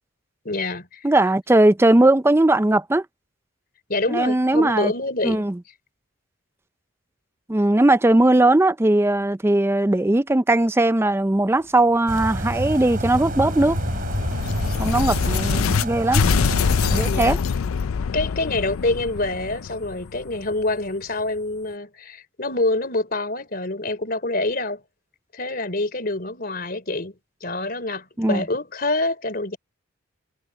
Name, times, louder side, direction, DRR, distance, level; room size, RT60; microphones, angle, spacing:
voice 1, 0.5-1.1 3.9-5.5 15.9-16.1 17.0-17.4 18.1-24.8 25.3-27.1 27.4-29.6, left 2 dB, 45° left, 3.7 m, -26 dB
voice 2, 1.0-3.1 4.1-4.9 5.2-5.6 7.5-13.8 14.8-16.2 16.9-17.4 28.2-28.4, right 1 dB, 10° right, 0.4 m, -19 dB
sound 1, 12.1-17.1, right 1 dB, 45° right, 4.0 m, -27 dB
sound 2, 12.4-15.8 16.1-20.8, left 6 dB, 80° left, 0.4 m, -25 dB
head